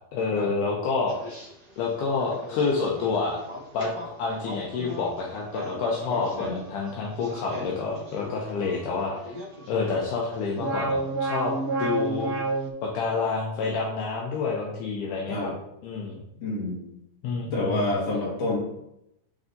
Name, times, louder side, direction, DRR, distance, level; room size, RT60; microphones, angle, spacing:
voice 1, 0.1-1.5 1.8-3.4 3.7-3.9 4.2-9.3 9.7-11.5 11.8-12.3 12.8-15.5 15.8-16.2 17.2-17.9, left 4 dB, 80° left, -2 dB, 2.2 m, -28 dB
sound 1, 1.1-1.5 2.2-10.0 10.3-12.7, right 2 dB, 60° right, 0.9 m, -33 dB
voice 2, 16.4-16.8 17.5-18.6, left 2 dB, 55° left, -5 dB, 2.9 m, -28 dB
10.5 x 3.5 x 2.6 m, 0.82 s
omnidirectional pair, 3.6 m